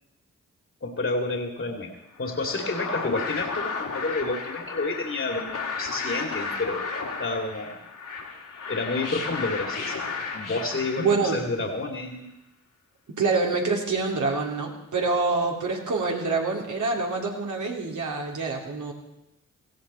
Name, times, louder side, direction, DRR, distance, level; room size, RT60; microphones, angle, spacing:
voice 1, 0.8-1.9 2.2-7.8 8.7-12.3, left 3 dB, 40° left, 2 dB, 2.4 m, -30 dB
sound 1, 2.2-11.6, left 4 dB, 75° left, 3.1 m, -33 dB
voice 2, 11.0-11.4 13.2-18.9, right 3 dB, 70° right, -1 dB, 3.3 m, -26 dB
17.5 x 15.5 x 4.3 m, 0.92 s
cardioid pair, 50°, 31 cm